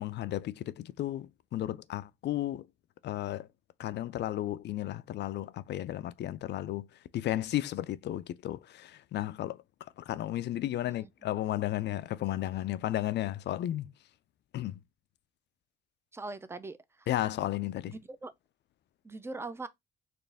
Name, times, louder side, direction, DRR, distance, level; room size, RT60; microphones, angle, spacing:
voice 1, 0.0-2.7 3.0-3.5 3.8-6.9 7.1-9.6 10.0-13.9 14.5-14.8 17.1-17.9, left 13 dB, 60° left, 0.4 m, -33 dB
voice 2, 16.1-17.1 17.9-18.3 19.0-19.7, right 3 dB, 10° right, 0.5 m, -41 dB
4.3 x 2.5 x 3.3 m
cardioid pair, 90°, 20 cm